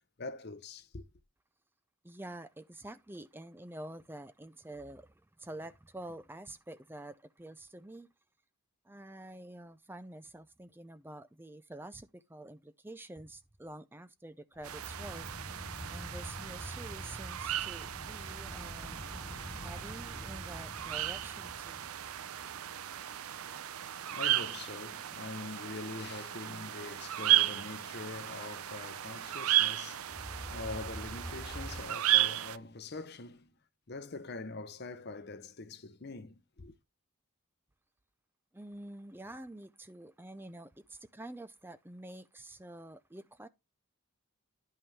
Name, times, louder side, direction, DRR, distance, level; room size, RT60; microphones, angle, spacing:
voice 1, 0.2-1.0 23.5-33.5 33.9-36.7, left 3 dB, 50° left, 0.8 m, -44 dB
voice 2, 2.0-8.1 8.8-15.6 15.9-19.0 19.6-21.9 38.5-43.5, right 1 dB, 10° right, 0.5 m, -48 dB
sound 1, 14.5-23.1 30.0-31.8, equal, 10° left, 1.6 m, -46 dB
sound 2, 14.6-32.6, right 13 dB, 85° right, 0.6 m, -34 dB
11.0 x 5.6 x 3.3 m
head